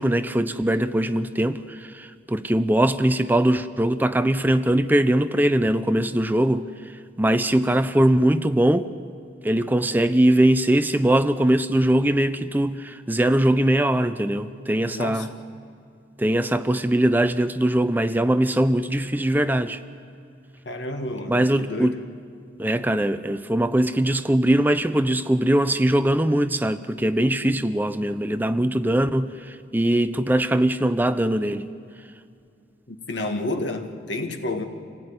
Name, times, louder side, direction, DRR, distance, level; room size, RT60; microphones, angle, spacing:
voice 1, 0.0-6.9 7.2-8.9 9.4-15.3 16.2-19.8 21.3-21.9 22.6-31.7, right 1 dB, 10° right, 0.5 m, -21 dB
voice 2, 14.9-15.3 20.6-22.0 32.9-34.6, left 2 dB, 80° left, 1.9 m, -30 dB
26.5 x 16.5 x 9.6 m
head